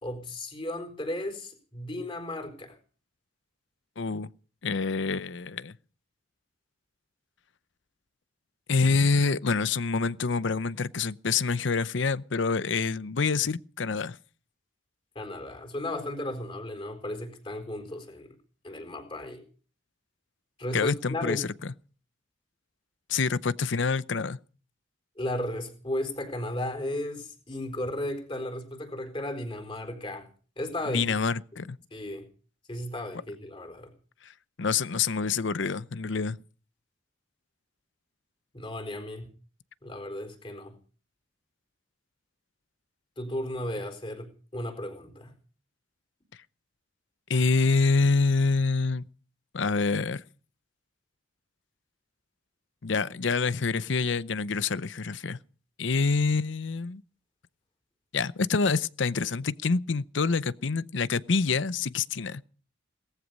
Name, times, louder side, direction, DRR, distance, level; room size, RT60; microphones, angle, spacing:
voice 1, 0.0-2.8 15.1-18.3 18.6-19.4 20.6-21.5 25.2-30.3 30.6-31.1 31.9-32.3 32.7-33.9 38.5-39.3 39.8-40.8 43.2-45.3, left 1 dB, 25° left, 4.1 m, -35 dB
voice 2, 4.0-4.3 4.6-5.8 8.7-14.2 20.7-21.5 23.1-24.4 30.9-31.8 34.6-36.4 47.3-49.1 49.5-50.2 52.8-55.4 55.8-57.0 58.1-62.4, left 4 dB, 65° left, 0.7 m, -26 dB
18.5 x 14.5 x 5.4 m
head